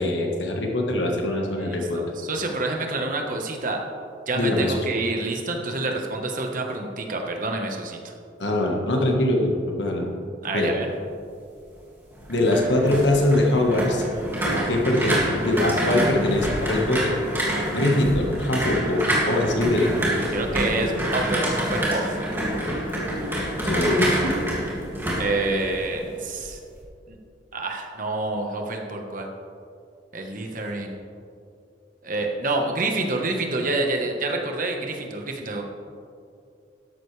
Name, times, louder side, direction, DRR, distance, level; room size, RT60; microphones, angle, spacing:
voice 1, 0.0-2.0 4.3-4.9 8.4-10.1 10.5-10.7 12.3-14.0 14.5-17.2 17.7-19.9 23.6-24.3, left 1 dB, 75° left, 1 dB, 1.5 m, -22 dB
voice 2, 1.6-3.8 4.3-8.1 10.4-10.9 20.3-22.2 25.2-26.6 27.1-27.2 27.5-29.3 30.1-30.9 32.0-35.6, right 2 dB, 45° right, 2 dB, 1.3 m, -28 dB
sound 1, 12.1-26.1 26.4-26.8, right 1 dB, 10° right, 2.4 m, -27 dB
13.0 x 12.0 x 3.4 m, 2.4 s
head